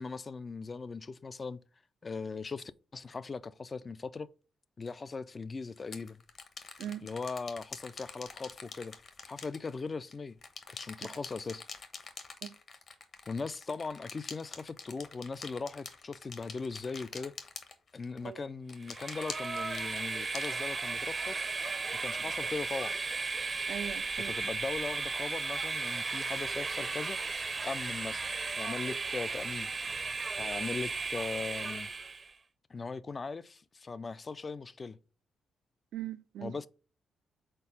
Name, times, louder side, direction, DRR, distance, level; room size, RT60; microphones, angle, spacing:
voice 1, 0.0-1.6 2.0-4.3 4.8-6.2 7.0-9.0 9.3-10.4 10.7-11.6 13.3-17.3 17.9-21.5 22.0-23.0 24.2-27.2 27.6-28.3 28.5-29.7 30.4-31.9 32.7-35.0 36.4-36.7, left 4 dB, 30° left, 0.3 m, -39 dB
sound 1, 4.8-4.9 5.8-10.1 10.4-18.3 18.7-21.2, left 4 dB, 50° left, 1.0 m, -46 dB
Train, 18.8-32.3, right 4 dB, 30° right, 0.6 m, -35 dB
voice 2, 23.7-24.4 35.9-36.6, right 10 dB, 80° right, 0.4 m, -40 dB
4.4 x 4.2 x 5.5 m
cardioid pair, 115°, 0 cm